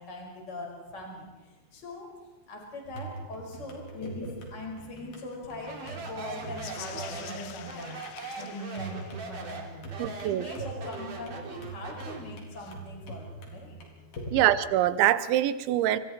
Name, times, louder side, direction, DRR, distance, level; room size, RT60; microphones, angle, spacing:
voice 1, 0.0-2.1 2.5-8.0 8.4-13.8 14.2-14.4, left 1 dB, 20° left, 0 dB, 5.5 m, -41 dB
sound 1, 2.9-14.4, right 2 dB, 60° left, 5.6 m, -44 dB
Speech, 5.6-12.3, right 4 dB, 45° right, 4.3 m, -41 dB
sound 2, 6.2-9.7 12.5-12.7, left 12 dB, 85° left, 3.5 m, -47 dB
voice 2, 10.0-10.5 14.3-16.0, right 12 dB, 80° right, 13 dB, 3.2 m, -24 dB
29.5 x 26.0 x 4.5 m, 1.1 s
omnidirectional pair, 5.4 m